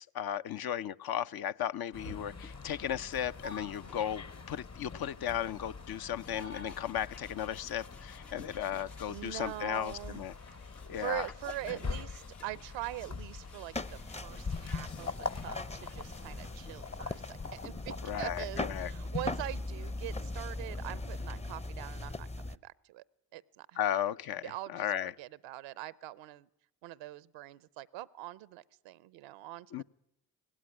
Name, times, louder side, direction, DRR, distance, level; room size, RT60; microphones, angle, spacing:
voice 1, 0.0-10.3 10.9-11.3 18.0-18.9 23.8-25.1 29.7-29.8, left 10 dB, 55° left, 0.7 m, -35 dB
sound 1, 1.9-21.4, left 4 dB, 35° left, 1.1 m, -44 dB
sound 2, 2.0-17.9, left 4 dB, 90° left, 1.4 m, -56 dB
voice 2, 9.1-10.2 10.6-23.0 23.3-23.8 24.4-26.5 26.8-29.8, right 16 dB, 80° right, 0.7 m, -43 dB
sound 3, 13.7-22.6, left 2 dB, 15° left, 0.7 m, -40 dB
18.0 x 17.0 x 10.0 m
hypercardioid pair, 40°, 44 cm